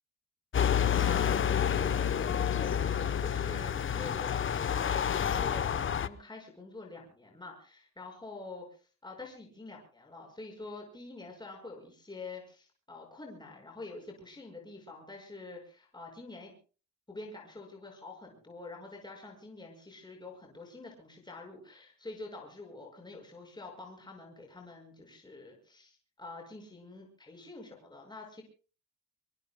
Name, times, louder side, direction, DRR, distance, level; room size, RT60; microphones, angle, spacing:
sound 1, 0.5-6.1, left 8 dB, 40° left, 0.9 m, -29 dB
voice 1, 0.9-1.4 1.7-16.5 17.1-28.4, left 3 dB, 15° left, 0 dB, 5.7 m, -46 dB
25.0 x 24.0 x 2.2 m, 0.36 s
cardioid pair, 90°, 30 cm